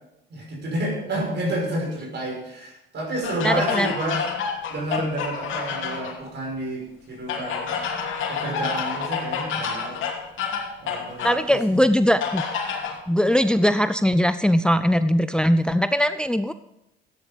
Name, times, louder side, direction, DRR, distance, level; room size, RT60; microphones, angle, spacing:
voice 1, 0.3-4.3 4.7-7.8 8.3-10.0 10.5-11.9, right 1 dB, 60° right, 1 dB, 5.7 m, -30 dB
sound 1, 3.2-6.2 7.3-11.4 12.2-13.0, left 6 dB, 80° left, 2.8 m, -29 dB
voice 2, 3.4-3.9 11.2-12.4 13.1-16.5, equal, 5° left, 12 dB, 0.5 m, -20 dB
14.0 x 10.5 x 5.2 m, 0.85 s
cardioid pair, 90°, 20 cm